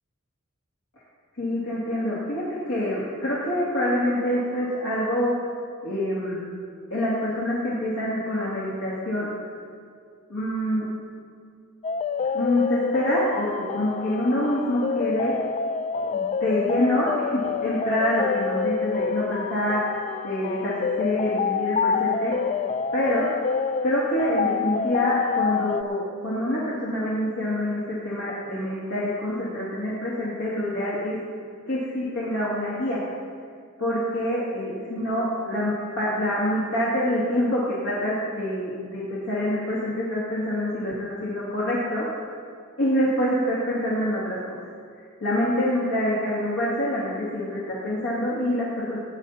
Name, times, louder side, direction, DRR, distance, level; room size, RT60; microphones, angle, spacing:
voice 1, 1.4-5.3 5.8-6.4 6.9-9.3 10.3-10.9 12.3-15.3 16.0-22.3 22.9-23.3 23.8-31.2 31.7-33.0 33.8-42.2 42.8-44.4 45.2-49.0, left 1 dB, 70° left, -8 dB, 2.6 m, -26 dB
sound 1, 11.8-25.8, left 6 dB, 30° left, 0.3 m, -27 dB
18.5 x 10.0 x 4.3 m, 2.3 s
head